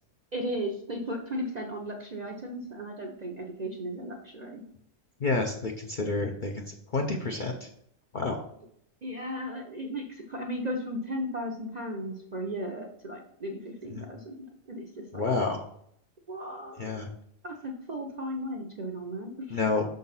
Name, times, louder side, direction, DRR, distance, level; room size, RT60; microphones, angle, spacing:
voice 1, 0.3-4.6 9.0-14.4 14.7-14.9 15.1-15.2 16.3-17.0 17.4-19.6, equal, 45° right, 1 dB, 0.6 m, -35 dB
voice 2, 5.2-7.7 8.1-8.4 13.9-14.1 15.1-15.6 16.8-17.1 19.5-19.9, left 3 dB, 50° left, 2 dB, 0.6 m, -29 dB
5.9 x 3.9 x 5.5 m, 0.71 s
omnidirectional pair, 1.5 m